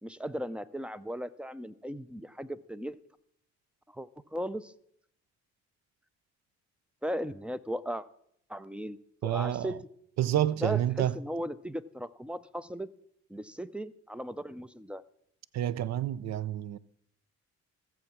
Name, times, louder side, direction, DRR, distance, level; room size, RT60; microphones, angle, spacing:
voice 1, 0.0-3.0 3.9-4.7 7.0-8.1 8.5-9.0 9.2-9.8 10.6-12.9 13.3-15.0, equal, 5° right, 0.4 m, -37 dB
voice 2, 9.2-9.8 10.2-11.2 15.5-16.8, right 12 dB, 60° right, 0.6 m, -29 dB
14.5 x 7.3 x 5.9 m
cardioid pair, 90°, 30 cm